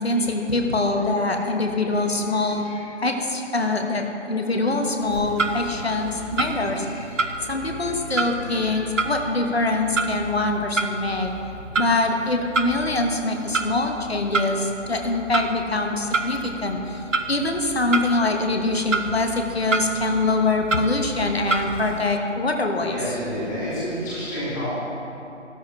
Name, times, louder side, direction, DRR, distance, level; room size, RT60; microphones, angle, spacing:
voice 1, 0.0-2.7 3.0-7.0 7.4-11.3 11.8-23.0, left 2 dB, 55° left, 3 dB, 1.3 m, -24 dB
Clock, 5.0-22.2, right 3 dB, 80° right, 0.8 m, -30 dB
voice 2, 6.7-7.3 7.7-8.8 11.2-11.4 13.8-13.9 14.5-14.6 14.9-15.0 16.9-17.0 22.8-24.7, equal, 15° left, -12 dB, 2.9 m, -32 dB
13.0 x 13.0 x 3.2 m, 2.8 s
figure-of-eight pair, 160°, 37 cm